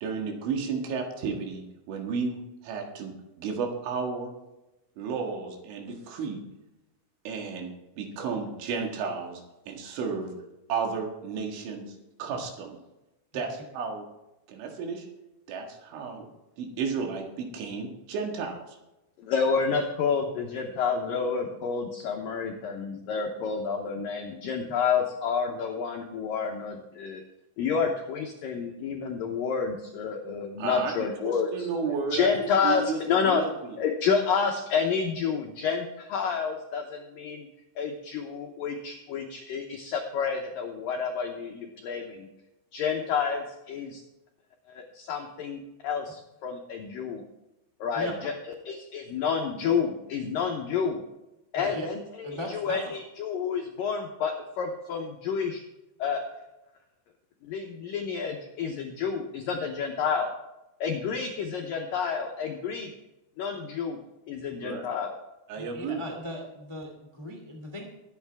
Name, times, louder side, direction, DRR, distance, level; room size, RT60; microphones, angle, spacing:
voice 1, 0.0-2.4 2.6-4.3 5.0-6.4 7.3-7.7 8.0-10.3 10.7-12.8 13.3-14.0 14.5-15.1 15.5-16.3 16.6-18.8 30.6-30.9 31.2-33.8 64.6-64.9 65.5-66.0, right 5 dB, 90° right, 2 dB, 4.3 m, -33 dB
voice 2, 19.2-27.2 27.6-31.7 32.1-33.4 33.8-37.5 37.8-42.3 42.7-44.0 44.7-47.2 47.8-48.3 48.7-51.0 51.5-55.6 56.0-56.2 57.4-60.3 60.8-62.9 63.4-64.0 64.3-65.2, left 6 dB, 85° left, 2 dB, 2.0 m, -29 dB
voice 3, 51.5-51.9 52.2-52.9 65.5-67.8, left 1 dB, 25° left, 1 dB, 0.5 m, -37 dB
21.5 x 8.4 x 3.5 m, 0.96 s
omnidirectional pair, 5.3 m